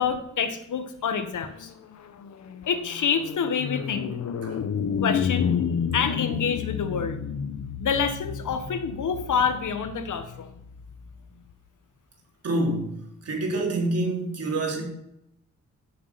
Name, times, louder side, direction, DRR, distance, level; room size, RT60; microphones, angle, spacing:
voice 1, 0.0-1.7 2.7-4.1 5.0-5.5 5.9-7.2 7.8-10.5, left 6 dB, 80° left, 1.5 m, -27 dB
sound 1, 1.6-11.1, left 7 dB, 65° left, 1.0 m, -31 dB
voice 2, 12.4-14.9, right 2 dB, 55° right, 3.8 m, -27 dB
16.0 x 7.2 x 5.8 m
wide cardioid pair, 180°, 30 cm